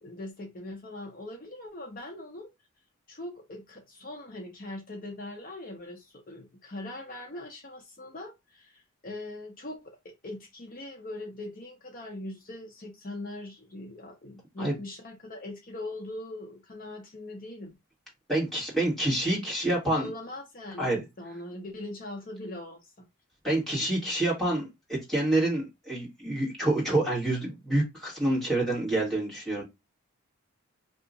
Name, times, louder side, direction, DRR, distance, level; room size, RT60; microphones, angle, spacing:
voice 1, 0.0-2.5 3.1-17.7 19.9-22.9, left 1 dB, 40° left, 0.6 m, -41 dB
voice 2, 18.3-20.1 20.8-21.0 23.4-29.6, right 1 dB, ahead, 1.5 m, -27 dB
2.8 x 2.4 x 3.7 m
head